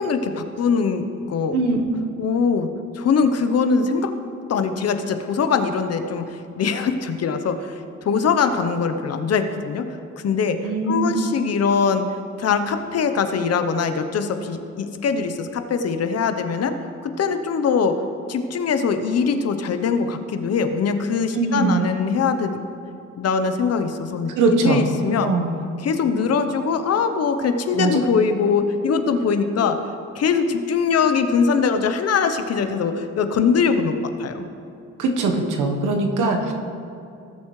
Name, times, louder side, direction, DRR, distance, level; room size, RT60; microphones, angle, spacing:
voice 1, 0.0-1.6 2.2-2.7 2.9-4.1 4.5-6.2 6.6-9.9 10.2-10.6 10.9-12.0 12.4-16.8 17.0-18.0 18.3-22.6 23.2-25.3 25.8-29.8 30.1-34.5, left 5 dB, 55° left, 8 dB, 0.9 m, -22 dB
voice 2, 10.6-11.2 21.3-21.9 24.3-24.8 25.2-25.5 27.7-28.0 35.0-36.5, right 3 dB, 85° right, 3 dB, 1.2 m, -21 dB
18.0 x 7.1 x 3.2 m, 2.6 s
cardioid pair, 90°, 30 cm